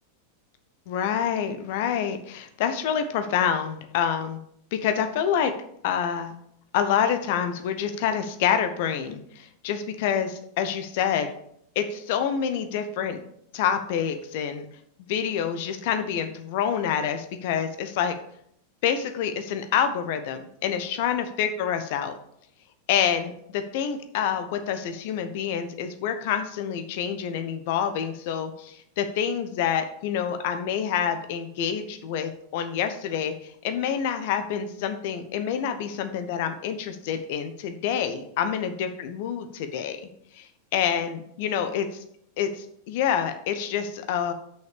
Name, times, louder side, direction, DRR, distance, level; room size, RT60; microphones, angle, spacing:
voice 1, 0.9-4.4 4.7-5.5 5.8-6.3 6.7-11.3 11.7-13.2 13.5-14.7 15.1-18.1 18.8-22.2 22.9-40.0 40.3-42.0 42.4-44.3, left 8 dB, 50° left, 9 dB, 1.0 m, -27 dB
6.3 x 5.6 x 6.7 m, 0.72 s
figure-of-eight pair, 90°, 0 cm